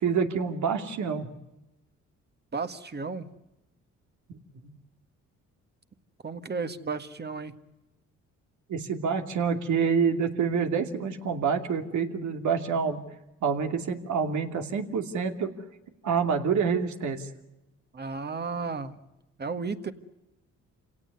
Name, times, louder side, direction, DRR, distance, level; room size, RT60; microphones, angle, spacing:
voice 1, 0.0-1.3 8.7-13.0 13.4-15.5 16.0-17.3, right 6 dB, 70° right, 5 dB, 2.7 m, -27 dB
voice 2, 2.5-3.3 6.2-7.5 17.9-18.9 19.4-19.9, right 4 dB, 35° right, 9 dB, 1.8 m, -33 dB
27.5 x 17.5 x 9.5 m, 0.96 s
cardioid pair, 90°, 30 cm